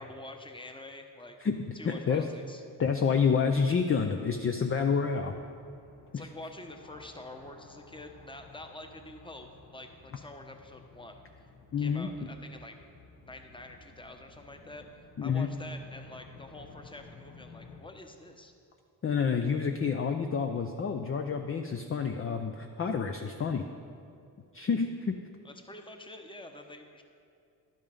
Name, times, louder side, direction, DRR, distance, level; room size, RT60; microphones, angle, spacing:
voice 1, 0.0-1.4 1.7-2.6 6.1-11.5 11.8-12.8 13.2-18.5 25.4-27.0, left 1 dB, 10° left, 5 dB, 1.0 m, -47 dB
voice 2, 1.4-2.2 2.8-5.3 6.1-6.2 11.7-12.3 15.2-15.5 19.0-23.6 24.5-25.1, left 6 dB, 35° left, 5 dB, 0.6 m, -28 dB
sound 1, 4.9-17.8, left 4 dB, 75° left, 1.5 m, -54 dB
11.0 x 5.3 x 5.3 m, 2.4 s
supercardioid pair, 55°, 40 cm